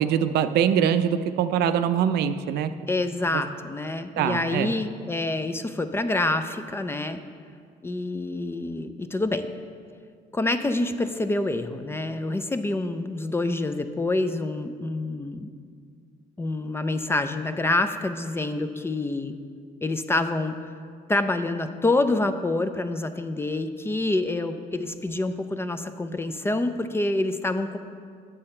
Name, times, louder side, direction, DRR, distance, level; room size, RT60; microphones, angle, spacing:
voice 1, 0.0-2.7 3.3-3.4 4.2-4.7, right 8 dB, 75° right, 10 dB, 0.4 m, -23 dB
voice 2, 2.9-7.2 7.8-9.5 10.3-15.5 16.4-19.4 19.8-20.6 21.1-27.8, left 2 dB, 15° left, 9 dB, 0.4 m, -27 dB
8.9 x 6.6 x 4.3 m, 2.1 s
cardioid pair, 110°, 17 cm